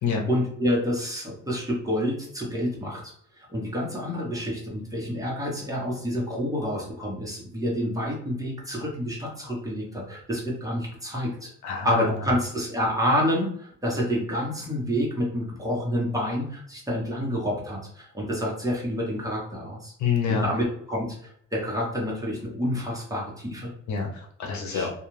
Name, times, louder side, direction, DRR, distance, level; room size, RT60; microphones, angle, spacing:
voice 1, 0.3-11.5 11.8-19.9 20.3-23.7 24.7-24.9, equal, 10° right, -4 dB, 1.1 m, -28 dB
voice 2, 11.6-12.2 20.0-20.5 23.9-24.9, left 6 dB, 70° left, 1 dB, 0.8 m, -27 dB
2.4 x 2.4 x 3.1 m, 0.66 s
cardioid pair, 90°, 30 cm